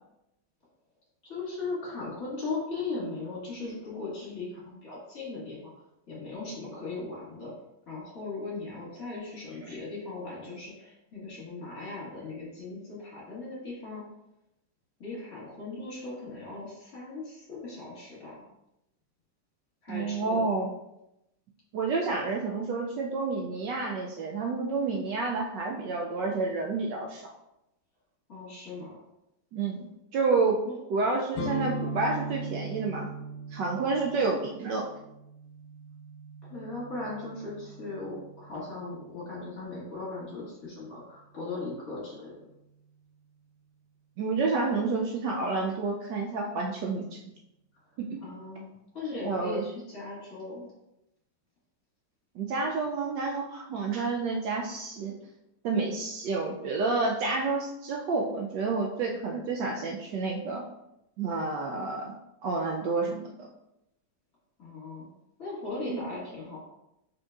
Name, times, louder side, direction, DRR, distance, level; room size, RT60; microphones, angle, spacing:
voice 1, 1.2-5.7 6.1-7.5 7.9-14.0 15.0-18.4 19.8-20.5 28.3-28.9 30.7-30.8 36.4-42.3 48.2-48.7 48.9-50.7 64.6-65.1 65.4-66.6, left 3 dB, 45° left, -7 dB, 2.2 m, -38 dB
voice 2, 19.9-20.7 21.7-27.3 29.5-30.6 30.9-33.1 33.5-34.9 44.2-47.1 48.0-48.2 49.2-49.7 52.3-55.1 55.6-60.6 61.2-62.2 62.4-63.5 65.8-66.0, right 3 dB, 75° right, 0 dB, 1.1 m, -29 dB
sound 1, 31.3-39.1, right 1 dB, 65° left, 1.3 m, -40 dB
5.1 x 4.3 x 2.4 m, 0.87 s
omnidirectional pair, 2.2 m